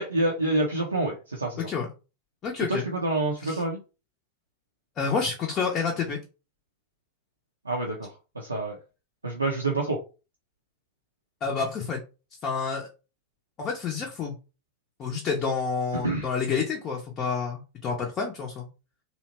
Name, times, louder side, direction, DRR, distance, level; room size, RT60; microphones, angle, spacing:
voice 1, 0.0-1.7 2.7-3.8 7.6-8.8 9.2-10.0 16.0-16.3, right 2 dB, 80° right, -1 dB, 0.5 m, -27 dB
voice 2, 2.4-2.8 3.4-3.6 5.0-6.2 11.4-12.0 12.4-12.9 13.6-14.3 15.0-18.7, left 5 dB, 30° left, 0 dB, 0.5 m, -29 dB
2.8 x 2.0 x 2.9 m, 0.32 s
figure-of-eight pair, 90°, 0 cm